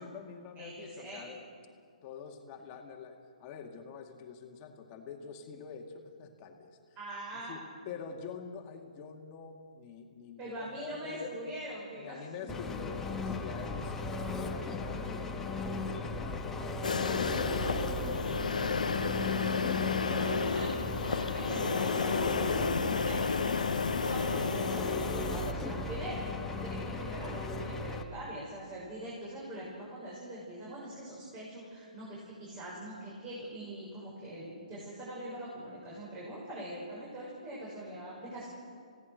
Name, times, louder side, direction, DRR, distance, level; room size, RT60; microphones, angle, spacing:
voice 1, 0.0-1.4 2.0-7.0 7.3-7.6 7.8-11.4 12.0-17.2 17.6-19.5 20.1-20.3 23.9-24.3, left 6 dB, 30° left, 2 dB, 2.2 m, -46 dB
voice 2, 0.6-1.3 6.9-7.6 10.4-12.5 19.2-20.7 21.0-38.5, right 1 dB, 25° right, -5 dB, 6.8 m, -43 dB
Engine, 12.5-28.0, left 3 dB, 10° left, 1.5 m, -36 dB
sound 1, 16.8-25.5, left 5 dB, 70° left, 1.1 m, -32 dB
29.5 x 17.0 x 6.6 m, 2.2 s
figure-of-eight pair, 130°, 4 cm